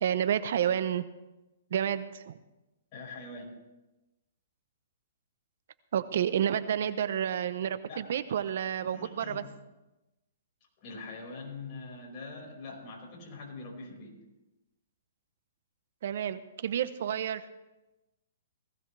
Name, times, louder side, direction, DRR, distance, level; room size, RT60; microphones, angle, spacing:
voice 1, 0.0-1.1 1.7-2.4 5.9-9.4 16.0-17.5, right 9 dB, 60° right, 14 dB, 0.8 m, -30 dB
voice 2, 2.9-3.5 7.9-8.0 8.9-9.5 10.8-14.2, left 3 dB, 35° left, -2 dB, 5.4 m, -43 dB
19.0 x 16.5 x 3.4 m, 1.0 s
hypercardioid pair, 150°, 0 cm